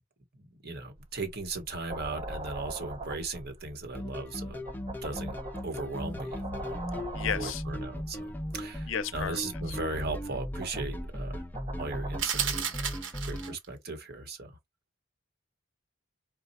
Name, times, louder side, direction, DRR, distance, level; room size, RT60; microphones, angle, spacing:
voice 1, 0.3-4.6 5.0-5.3 5.6-11.4 11.8-12.9 13.2-14.6, right 3 dB, 55° right, 1.5 m, -38 dB
sound 1, 1.0-12.2, right 2 dB, 30° right, 0.8 m, -43 dB
sound 2, 3.9-13.6, equal, 10° left, 0.5 m, -37 dB
voice 2, 7.1-7.6 8.9-9.4 9.7-9.8, left 8 dB, 80° left, 0.6 m, -33 dB
sound 3, 12.2-13.7, right 7 dB, 70° right, 1.3 m, -32 dB
4.8 x 2.4 x 4.1 m
head